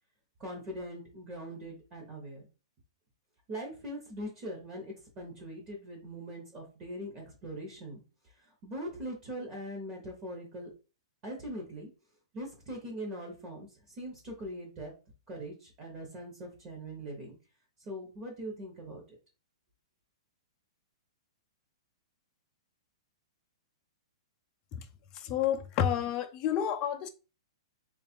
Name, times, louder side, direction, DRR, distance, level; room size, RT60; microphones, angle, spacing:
voice 1, 0.4-2.5 3.5-10.7 11.2-11.9 12.3-14.9 15.3-17.4 17.8-19.0, equal, 25° right, 1.0 m, -41 dB
voice 2, 25.1-27.1, left 9 dB, 25° left, 0.4 m, -30 dB
3.2 x 2.4 x 4.3 m
hypercardioid pair, 165°, 3 cm